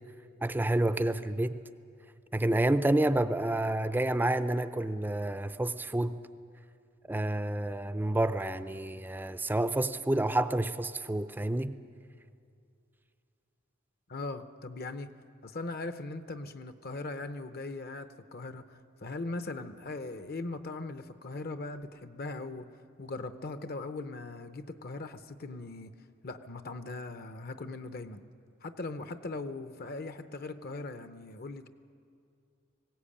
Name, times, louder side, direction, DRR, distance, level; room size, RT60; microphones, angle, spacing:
voice 1, 0.4-1.6 2.3-6.2 7.1-11.8, right 1 dB, 10° right, 11 dB, 0.4 m, -29 dB
voice 2, 14.1-15.1 15.4-22.7 23.0-25.9 26.2-28.2 28.6-31.7, left 2 dB, 50° left, 10 dB, 0.7 m, -39 dB
20.0 x 16.5 x 8.6 m, 2.4 s
head